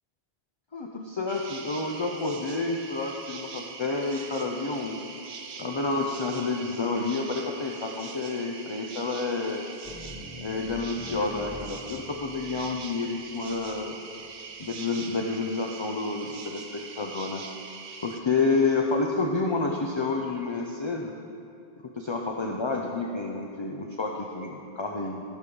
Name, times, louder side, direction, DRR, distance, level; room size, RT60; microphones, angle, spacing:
voice 1, 0.7-5.0 5.6-9.7 10.4-14.0 14.6-17.4 18.0-21.1 21.8-25.2, left 3 dB, 35° left, 1 dB, 0.6 m, -29 dB
sound 1, 1.3-18.2, right 5 dB, 65° right, 0.9 m, -42 dB
sound 2, 9.8-14.6, equal, 70° left, 2.7 m, -46 dB
14.5 x 6.3 x 5.4 m, 2.6 s
omnidirectional pair, 1.1 m